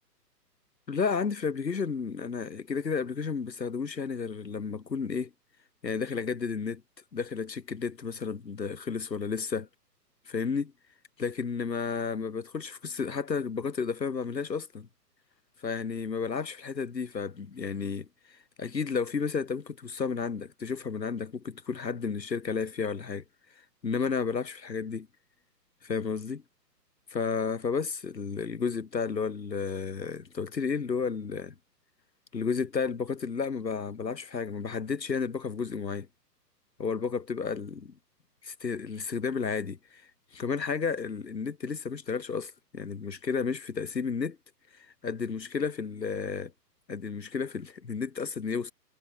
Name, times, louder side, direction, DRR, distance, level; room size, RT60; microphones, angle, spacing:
voice 1, 0.9-5.3 5.8-6.8 7.1-9.7 10.3-10.7 11.2-14.9 15.6-18.1 18.6-23.2 23.8-25.1 25.8-26.4 27.1-31.5 32.3-36.1 36.8-37.9 38.4-40.0 40.3-44.4 45.0-46.5 46.9-48.7, left 5 dB, 75° left, 3.1 m, -32 dB
figure-of-eight pair, 130°, 50 cm